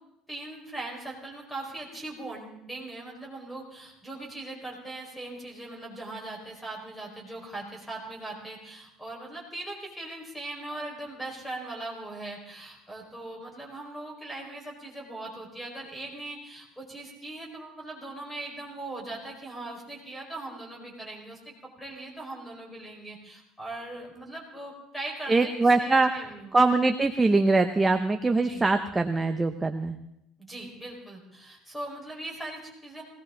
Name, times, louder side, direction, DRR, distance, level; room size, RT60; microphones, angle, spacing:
voice 1, 0.3-26.6 28.4-28.7 30.4-33.0, right 2 dB, 5° left, 0 dB, 5.0 m, -40 dB
voice 2, 25.3-30.0, right 3 dB, 10° right, 6 dB, 0.8 m, -23 dB
20.0 x 18.0 x 3.9 m, 0.83 s
cardioid pair, 160°, 0 cm